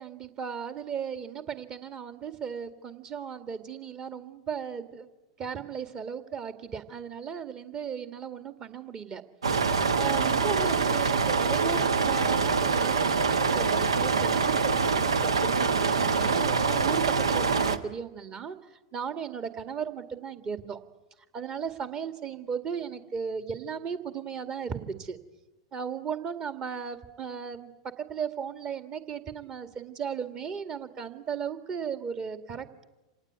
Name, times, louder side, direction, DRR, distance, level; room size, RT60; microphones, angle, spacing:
voice 1, 0.0-5.1 5.4-9.2 9.5-9.6 10.0-18.6 18.9-20.8 21.3-25.2 25.7-27.7 28.1-32.8, right 7 dB, 30° right, 9 dB, 2.1 m, -36 dB
sound 1, 9.4-17.8, right 5 dB, 75° right, 1.3 m, -25 dB
27.0 x 18.5 x 9.2 m, 1.0 s
figure-of-eight pair, 95°, 3 cm